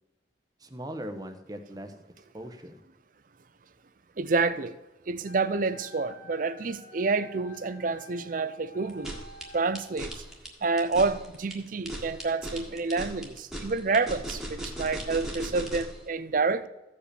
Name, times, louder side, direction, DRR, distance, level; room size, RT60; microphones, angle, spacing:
voice 1, 0.6-2.8, equal, 20° right, 7 dB, 1.0 m, -40 dB
voice 2, 4.2-4.8 5.1-9.1 9.5-10.2 10.6-16.7, right 4 dB, 50° right, 14 dB, 0.6 m, -28 dB
Wind instrument woodwind instrument, 5.2-10.0, left 1 dB, 45° left, 1.7 m, -50 dB
sound 1, 8.9-16.0, right 1 dB, ahead, 1.6 m, -38 dB
15.0 x 5.2 x 6.8 m, 1.0 s
head